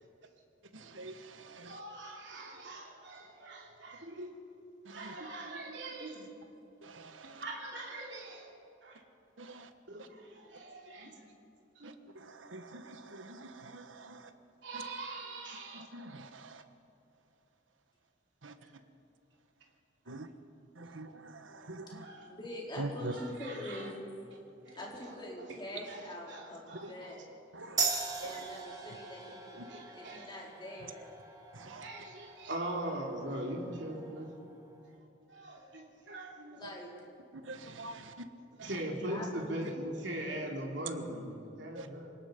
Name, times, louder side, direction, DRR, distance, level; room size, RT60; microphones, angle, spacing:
voice 1, 0.7-1.8 4.9-5.2 6.8-7.4 9.4-9.7 11.8-14.3 14.7-14.8 15.7-16.6 18.4-18.5 20.1-20.3 20.8-22.1 22.8-23.1 26.8-26.9 27.5-27.8 28.2-28.4 31.5-31.9 36.6-36.7 37.4-38.2 38.6-38.7 41.7-41.9, right 2 dB, 90° right, 9 dB, 1.3 m, -45 dB
voice 2, 1.6-4.3 4.9-6.3 7.2-8.5 8.8-9.0 9.9-11.1 11.8-11.9 14.6-15.9 18.6-18.7 22.0-22.3 23.0-23.9 24.6-24.8 25.9-27.1 27.6-28.5 29.7-30.3 31.8-34.3 35.3-36.7 37.7-37.9 38.6-42.1, right 1 dB, 65° right, -1 dB, 3.1 m, -41 dB
voice 3, 21.9-24.2 24.8-27.3 28.2-29.6 29.9-31.2 36.5-36.9 39.1-39.3, left 1 dB, 25° left, -3 dB, 4.1 m, -44 dB
sound 1, 27.8-34.9, right 4 dB, 20° right, 1.9 m, -40 dB
27.5 x 18.5 x 5.1 m, 2.7 s
head